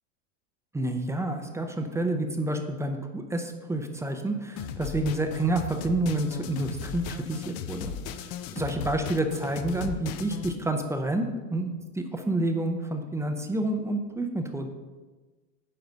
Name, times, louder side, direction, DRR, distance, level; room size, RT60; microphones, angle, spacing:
voice 1, 0.7-14.7, right 2 dB, 5° right, 5 dB, 0.6 m, -29 dB
sound 1, 4.6-10.6, left 8 dB, 35° left, 0.5 m, -37 dB
9.7 x 3.9 x 6.5 m, 1.3 s
hypercardioid pair, 115°, 46 cm